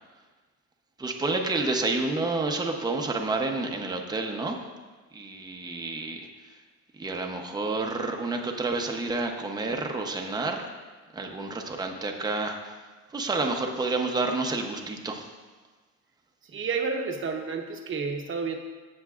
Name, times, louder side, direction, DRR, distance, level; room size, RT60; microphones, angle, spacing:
voice 1, 1.0-4.6 5.1-6.3 6.9-10.7 11.1-12.8 13.1-15.3, right 3 dB, 10° right, 2 dB, 0.7 m, -29 dB
voice 2, 16.4-18.6, right 5 dB, 35° right, 4 dB, 0.9 m, -30 dB
16.0 x 7.1 x 2.4 m, 1.3 s
cardioid pair, 160°, 34 cm